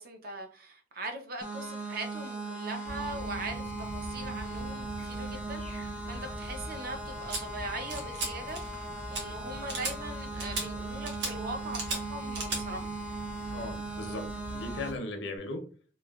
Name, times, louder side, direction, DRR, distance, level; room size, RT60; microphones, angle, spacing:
voice 1, 0.0-12.9, right 2 dB, 50° right, 5 dB, 0.5 m, -41 dB
sound 1, 1.4-14.9, right 3 dB, 5° right, 0.5 m, -39 dB
sound 2, 2.8-15.0, equal, 30° right, 0.9 m, -44 dB
sound 3, 7.3-7.4 7.9-8.3 8.5-8.8 9.1-9.2 9.7-9.9 10.4-10.6 11.1-11.3 11.7-12.0 12.3-12.6, right 3 dB, 85° right, 0.8 m, -34 dB
voice 2, 13.5-15.6, left 2 dB, 80° left, 4 dB, 0.6 m, -38 dB
3.1 x 2.1 x 2.3 m, 0.40 s
head